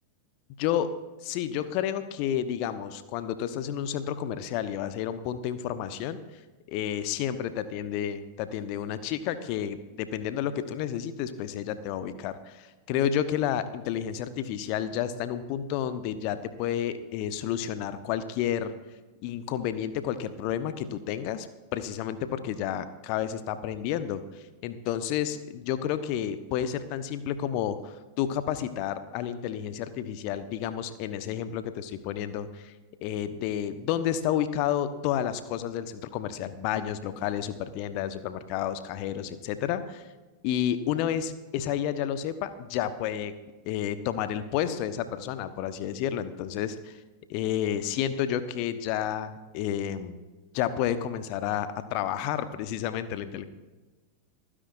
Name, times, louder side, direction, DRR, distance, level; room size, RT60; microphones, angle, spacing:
voice 1, 0.6-0.9 1.2-6.2 6.7-18.7 19.2-21.5 21.7-32.7 33.0-40.1 40.4-43.3 43.7-47.0 47.3-50.2 50.5-53.4, left 10 dB, 45° left, 12 dB, 1.0 m, -31 dB
29.5 x 10.0 x 2.6 m, 1.2 s
figure-of-eight pair, 90°, 0 cm